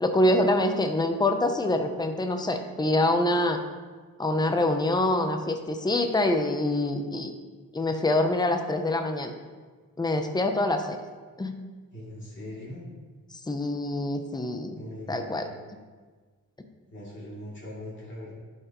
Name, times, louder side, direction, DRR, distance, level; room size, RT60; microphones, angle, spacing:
voice 1, 0.0-3.6 4.2-7.3 7.7-9.3 10.0-11.0 11.4-11.6 13.5-14.8 15.1-15.5, left 1 dB, 10° left, 6 dB, 0.5 m, -25 dB
voice 2, 11.9-12.8 14.7-15.5 16.9-18.3, left 1 dB, 35° left, -8 dB, 2.6 m, -40 dB
11.0 x 5.8 x 3.0 m, 1.4 s
wide cardioid pair, 145°, 34 cm